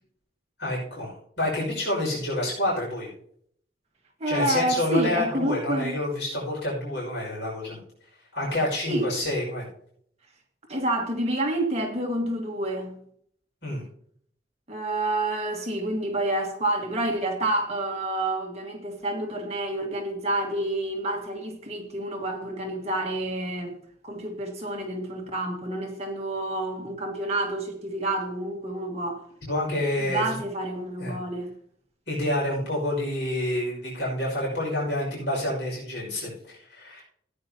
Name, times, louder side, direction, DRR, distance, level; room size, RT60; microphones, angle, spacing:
voice 1, 0.6-3.1 4.3-7.8 8.3-9.7 13.6-13.8 29.5-30.4 31.0-31.2 32.1-37.0, left 1 dB, 70° left, 5.8 m, -28 dB
voice 2, 4.2-6.0 8.9-9.1 10.7-13.0 14.7-23.8 24.0-29.2 30.1-31.5, right 1 dB, 35° right, 1.9 m, -28 dB
15.5 x 9.7 x 2.9 m
head